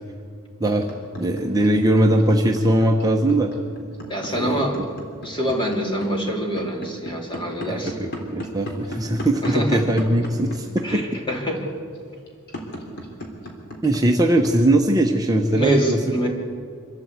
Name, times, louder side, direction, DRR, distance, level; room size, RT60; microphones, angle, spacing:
sound 1, 0.8-14.5, left 1 dB, 50° left, 3.5 m, -35 dB
voice 1, 1.2-3.5 4.3-4.6 7.7-11.0 13.8-16.0, right 1 dB, 15° right, 1 dB, 1.0 m, -20 dB
voice 2, 4.1-4.7 5.2-7.9 9.4-9.8 10.8-11.6 15.5-16.3, right 1 dB, 25° left, 0 dB, 3.4 m, -25 dB
25.0 x 13.0 x 8.3 m, 2.2 s
head